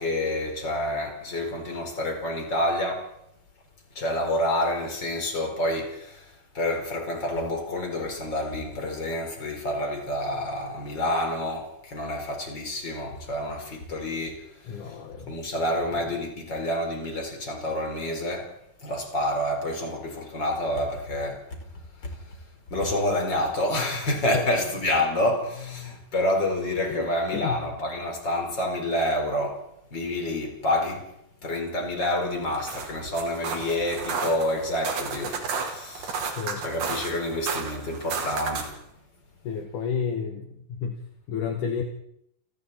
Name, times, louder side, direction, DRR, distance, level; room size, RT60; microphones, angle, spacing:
voice 1, 0.0-3.1 4.0-15.0 15.3-18.5 18.8-21.6 22.3-22.4 22.7-29.7 29.9-31.1 31.4-38.8, left 1 dB, 30° left, 5.0 m, -28 dB
voice 2, 14.7-15.4 24.3-24.5 26.9-27.6 36.4-36.6 39.4-41.0 41.3-41.8, left 6 dB, 60° left, 3.0 m, -31 dB
sound 1, 32.4-38.8, right 5 dB, 85° right, 4.8 m, -33 dB
29.5 x 20.5 x 4.3 m
omnidirectional pair, 4.2 m